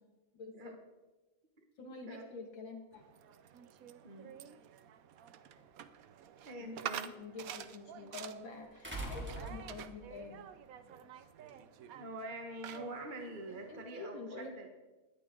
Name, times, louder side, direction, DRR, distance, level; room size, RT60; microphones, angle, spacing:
voice 1, 0.3-0.8 1.8-3.0 6.6-6.7 7.2-10.4 13.5-14.7, left 3 dB, 65° left, 2 dB, 2.7 m, -47 dB
sound 1, 2.9-13.9, right 9 dB, 75° right, 0.8 m, -49 dB
sound 2, 5.6-5.7 8.8-10.1 11.5-11.6, right 1 dB, 5° right, 2.8 m, -42 dB
voice 2, 6.4-7.1 12.0-14.7, right 1 dB, 30° right, 3 dB, 1.1 m, -45 dB
20.0 x 13.0 x 3.8 m, 1.1 s
omnidirectional pair, 2.3 m